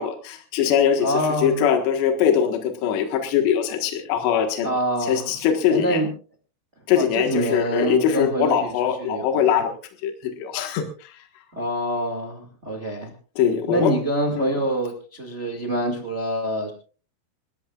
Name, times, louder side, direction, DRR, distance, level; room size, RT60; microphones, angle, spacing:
voice 1, 0.0-4.7 5.0-6.0 6.9-9.7 10.0-11.1 13.4-13.9 14.4-14.5, left 8 dB, 70° left, 5 dB, 3.6 m, -22 dB
voice 2, 1.0-1.6 4.6-5.3 5.7-6.1 6.9-9.5 11.5-13.1 13.7-16.7, right 1 dB, 45° right, 2 dB, 0.8 m, -26 dB
27.5 x 13.5 x 2.4 m, 0.39 s
omnidirectional pair, 5.4 m